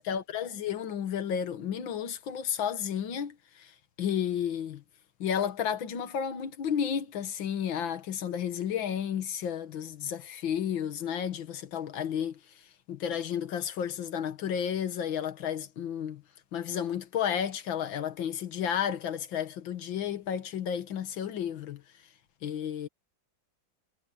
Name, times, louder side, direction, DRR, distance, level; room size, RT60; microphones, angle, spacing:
voice 1, 0.0-3.7 4.0-4.8 5.2-12.4 12.9-16.2 16.5-21.8 22.4-22.9, left 8 dB, 80° left, 2.1 m, -32 dB
omnidirectional pair, 2.1 m